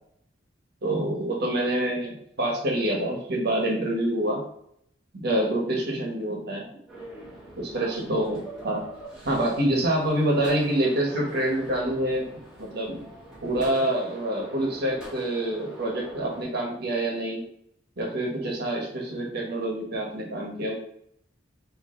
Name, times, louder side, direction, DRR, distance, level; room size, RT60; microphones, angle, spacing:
voice 1, 0.8-4.4 5.2-6.7 7.6-8.8 9.2-12.3 12.6-13.1 13.4-17.5 18.0-20.7, right 1 dB, 55° right, -1 dB, 1.3 m, -26 dB
sound 1, 6.9-16.4, right 1 dB, 5° right, 1.4 m, -43 dB
4.1 x 2.9 x 3.8 m, 0.71 s
head